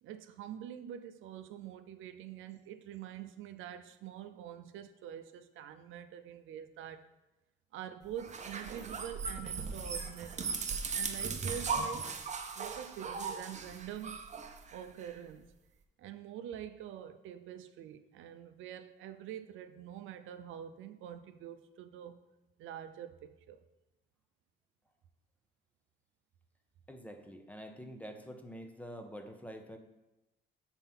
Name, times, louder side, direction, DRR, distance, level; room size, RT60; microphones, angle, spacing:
voice 1, 0.0-7.1 7.7-10.4 10.9-12.1 12.6-14.2 14.7-15.5 16.0-22.2 22.6-23.6, right 10 dB, 80° right, 9 dB, 0.5 m, -46 dB
sound 1, 8.2-15.1, right 5 dB, 35° right, 0.7 m, -38 dB
voice 2, 26.9-29.8, equal, 5° left, 5 dB, 0.8 m, -47 dB
5.6 x 4.5 x 5.5 m, 0.99 s
cardioid pair, 90°, 20 cm